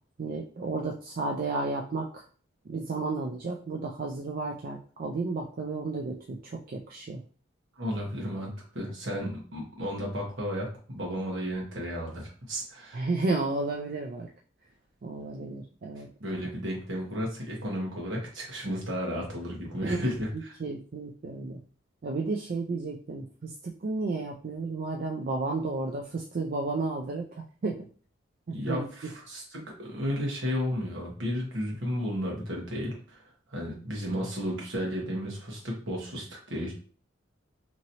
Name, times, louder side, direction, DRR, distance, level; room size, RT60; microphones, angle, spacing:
voice 1, 0.2-2.2 2.7-7.2 12.9-14.3 15.0-16.1 19.8-20.0 20.6-21.6 22.0-27.9 28.5-28.9, right 3 dB, 50° right, 0 dB, 0.4 m, -32 dB
voice 2, 7.8-13.0 16.2-20.6 28.5-36.7, equal, 70° right, -1 dB, 1.2 m, -33 dB
2.9 x 2.8 x 2.7 m, 0.42 s
head